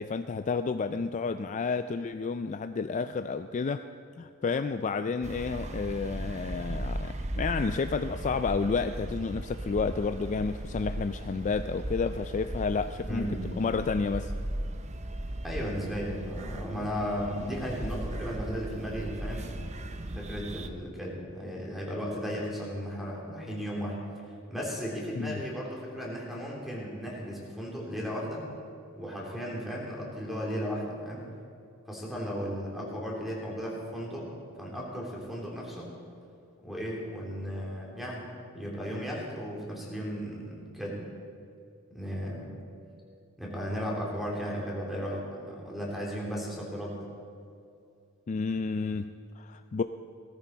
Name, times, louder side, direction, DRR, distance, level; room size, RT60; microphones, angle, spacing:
voice 1, 0.0-3.9 4.2-14.3 25.1-25.4 48.3-49.8, left 4 dB, 35° left, 10 dB, 0.3 m, -31 dB
sound 1, 5.2-20.7, right 1 dB, 30° right, 0.7 m, -37 dB
voice 2, 13.1-13.5 15.4-19.5 20.1-28.4 28.9-31.2 31.9-34.3 34.6-35.9 36.6-38.3 38.5-41.0 41.9-42.5 43.4-47.0, equal, ahead, -3 dB, 3.2 m, -35 dB
17.5 x 14.0 x 4.6 m, 2.4 s
head